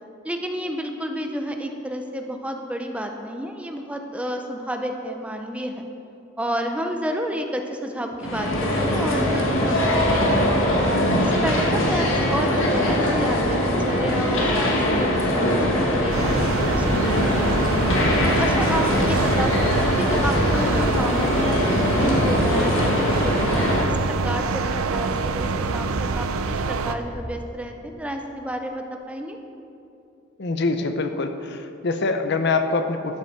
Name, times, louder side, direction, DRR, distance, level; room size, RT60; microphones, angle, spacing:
voice 1, 0.2-5.9 6.4-10.8 11.2-16.3 16.7-17.7 18.2-21.6 21.9-29.4, equal, 5° right, 4 dB, 0.6 m, -30 dB
sound 1, 8.2-23.8, left 1 dB, 70° left, 1.5 m, -21 dB
sound 2, 16.1-26.9, right 4 dB, 90° right, 0.5 m, -26 dB
Speech / Wind, 16.2-21.1, equal, 85° left, 1.9 m, -34 dB
voice 2, 30.4-33.2, left 3 dB, 55° left, 8 dB, 0.6 m, -24 dB
12.0 x 7.5 x 5.8 m, 2.7 s
head